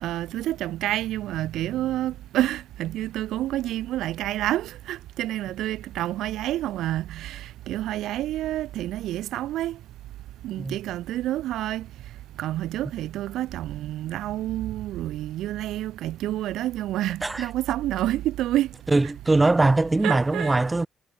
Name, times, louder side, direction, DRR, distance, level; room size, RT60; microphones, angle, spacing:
voice 1, 0.0-9.8 10.4-11.9 12.4-18.7 20.0-20.6, right 14 dB, 85° right, 1.2 m, -28 dB
voice 2, 18.9-20.9, right 2 dB, 15° right, 0.6 m, -21 dB
cardioid pair, 110°, 0 cm